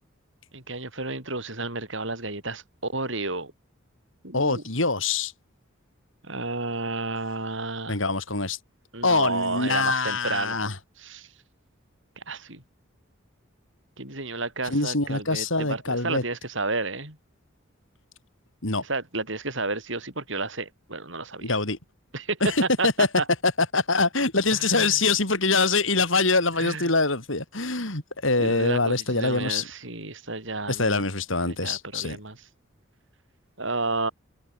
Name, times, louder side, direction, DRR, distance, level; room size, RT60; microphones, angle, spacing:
voice 1, 0.5-3.5 4.2-4.6 6.2-7.9 8.9-10.6 11.0-11.3 12.2-12.6 14.0-17.2 18.8-21.5 22.1-23.2 24.5-25.0 26.6-26.9 28.4-31.0 31.5-32.4 33.6-34.1, right 3 dB, 60° right, 7.9 m, -31 dB
voice 2, 4.3-5.3 7.9-8.6 9.0-10.8 14.7-16.2 18.6-18.8 21.4-21.8 22.4-23.1 23.4-29.7 30.7-32.2, left 3 dB, 70° left, 5.8 m, -24 dB
head